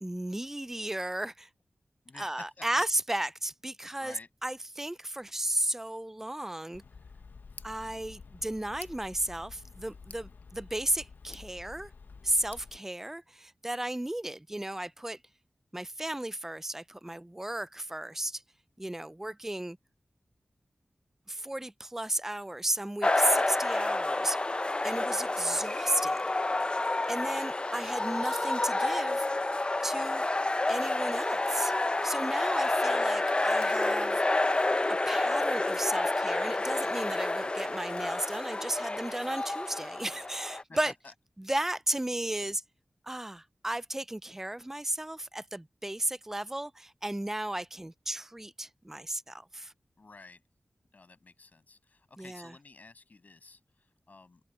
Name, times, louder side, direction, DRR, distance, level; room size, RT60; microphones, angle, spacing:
voice 1, 0.0-1.5 2.2-4.2 4.4-6.8 7.6-11.9 12.2-15.2 15.7-18.4 18.8-19.8 21.3-24.4 24.8-26.2 27.1-29.3 29.8-30.3 30.7-31.7 32.0-34.2 34.9-40.9 41.4-42.6 43.0-49.7 52.2-52.5, right 1 dB, 10° right, 0.3 m, -34 dB
voice 2, 2.0-2.8 4.0-4.3 40.7-41.1 50.0-50.4 50.9-54.4, left 3 dB, 60° left, 7.1 m, -52 dB
Tick, 6.7-12.8, left 4 dB, 80° left, 0.8 m, -49 dB
sound 1, 23.0-40.6, left 2 dB, 30° left, 0.7 m, -29 dB
cardioid pair, 50°, 3 cm